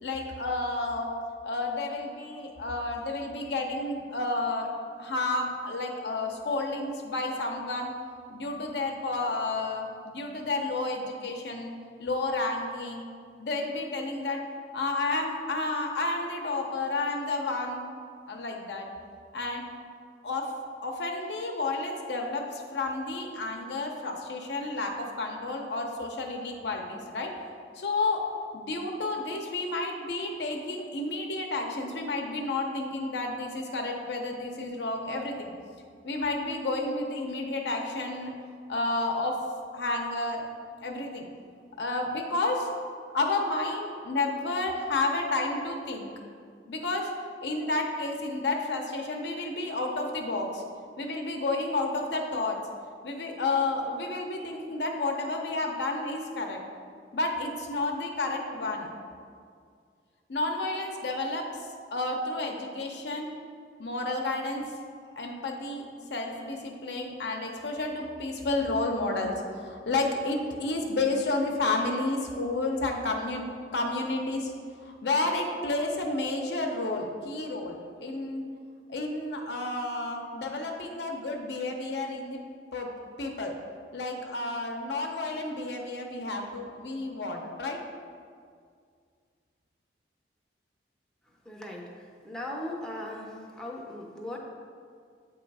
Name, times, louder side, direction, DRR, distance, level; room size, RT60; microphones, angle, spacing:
voice 1, 0.0-1.1 1.4-4.7 5.0-7.9 8.3-11.7 12.0-13.0 13.4-14.4 14.7-17.9 18.3-18.9 19.3-19.6 20.2-20.5 20.8-27.3 27.7-28.2 28.5-35.5 36.0-38.3 38.7-39.4 39.7-40.4 40.8-41.2 41.8-42.7 43.1-46.1 46.7-47.1 47.4-50.6 51.0-52.6 53.0-56.6 57.1-58.9 60.3-61.6 61.9-63.3 63.8-64.6 65.2-65.8 66.1-73.5 73.7-74.5 74.8-78.4 78.9-82.4 82.7-82.9 83.2-83.5 83.9-87.8, left 2 dB, 70° left, 2 dB, 0.7 m, -31 dB
voice 2, 91.5-91.8 92.2-93.3 93.6-94.4, left 1 dB, 5° left, -2 dB, 0.6 m, -37 dB
7.9 x 3.0 x 4.7 m, 2.1 s
head